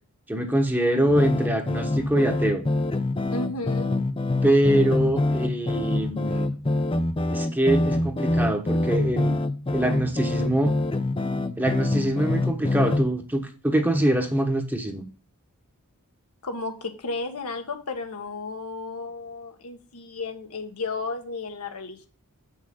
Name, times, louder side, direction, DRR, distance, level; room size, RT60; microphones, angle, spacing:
voice 1, 0.3-2.6 4.4-6.5 7.3-9.3 9.7-10.7 11.6-15.1, right 1 dB, 10° right, 5 dB, 1.1 m, -24 dB
sound 1, 1.1-13.0, left 2 dB, 25° left, 0.6 m, -25 dB
voice 2, 3.3-4.0 16.4-22.1, left 3 dB, 80° left, 5 dB, 1.3 m, -33 dB
7.4 x 6.3 x 3.7 m, 0.35 s
head